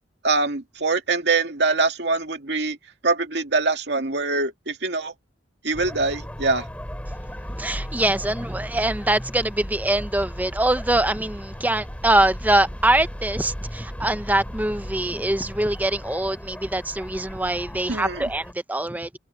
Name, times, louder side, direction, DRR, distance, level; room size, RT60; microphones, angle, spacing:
voice 1, 0.2-2.8 3.0-5.1 5.6-6.7 17.9-18.3, right 3 dB, 65° right, 2.3 m, -23 dB
sound 1, 5.7-18.5, equal, 10° left, 3.1 m, -36 dB
voice 2, 7.5-19.2, right 1 dB, 10° right, 0.9 m, -23 dB
head